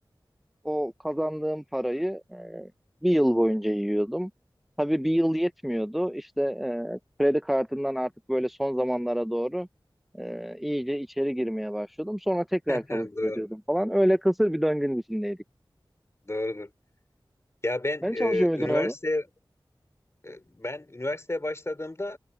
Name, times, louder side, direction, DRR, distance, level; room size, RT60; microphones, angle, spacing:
voice 1, 0.6-2.7 3.0-4.3 4.8-9.7 10.2-15.4 18.0-18.9, equal, ahead, 0.6 m, -27 dB
voice 2, 12.7-13.5 16.2-16.7 17.6-19.2 20.2-22.2, left 1 dB, 35° left, 4.1 m, -31 dB
wide cardioid pair, 60°, 8 cm